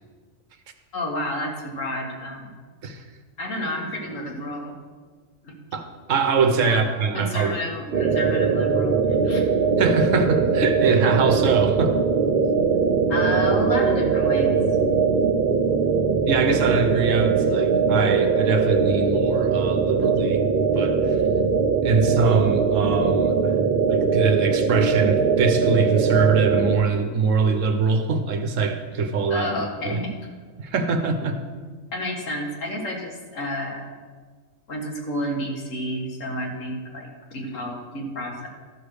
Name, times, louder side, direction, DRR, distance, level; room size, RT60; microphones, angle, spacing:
voice 1, 0.9-2.5 3.4-4.8 5.4-5.6 6.7-9.4 13.1-14.6 29.3-30.2 31.9-33.9 34.7-38.5, equal, 70° left, 0 dB, 2.0 m, -30 dB
voice 2, 5.7-7.6 9.8-12.0 16.2-20.4 20.7-21.2 21.8-23.5 23.9-30.0 30.6-31.4, right 4 dB, 70° right, 7 dB, 1.2 m, -23 dB
sound 1, 7.9-26.8, right 5 dB, 55° right, 0.6 m, -21 dB
13.0 x 5.2 x 6.3 m, 1.5 s
omnidirectional pair, 1.4 m